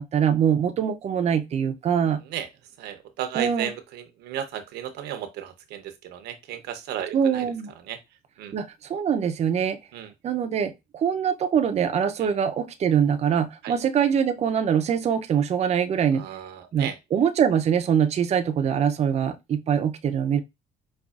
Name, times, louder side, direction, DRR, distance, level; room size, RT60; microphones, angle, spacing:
voice 1, 0.0-2.2 3.3-3.7 7.1-7.7 8.5-9.8 10.2-16.2 16.7-20.4, right 8 dB, 40° right, 0.5 m, -23 dB
voice 2, 2.8-7.4 7.9-8.0 8.4-8.5 9.9-10.1 13.6-13.7 16.2-16.9, right 10 dB, 80° right, 0.8 m, -34 dB
5.2 x 2.3 x 2.4 m
cardioid pair, 110°, 17 cm